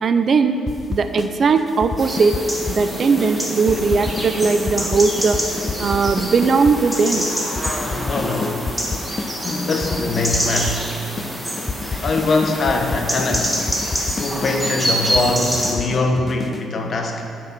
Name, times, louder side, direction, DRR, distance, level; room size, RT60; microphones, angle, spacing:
voice 1, 0.0-0.6 0.9-2.4 2.7-7.3, right 4 dB, 50° right, 9 dB, 0.5 m, -18 dB
sound 1, 0.7-1.3 1.6-2.8 3.2-3.3 3.6-6.8 7.2-7.3 7.5-9.3 9.6-10.8 11.2-11.3 11.6-16.7, left 4 dB, 30° left, 0.5 m, -29 dB
sound 2, 2.0-15.7, equal, 5° right, 1.6 m, -26 dB
voice 2, 7.8-9.0 9.4-10.9 11.2-11.5 12.0-13.6 14.2-17.3, left 3 dB, 50° left, 3 dB, 1.1 m, -23 dB
9.2 x 6.1 x 6.0 m, 2.4 s
cardioid pair, 90°, 0 cm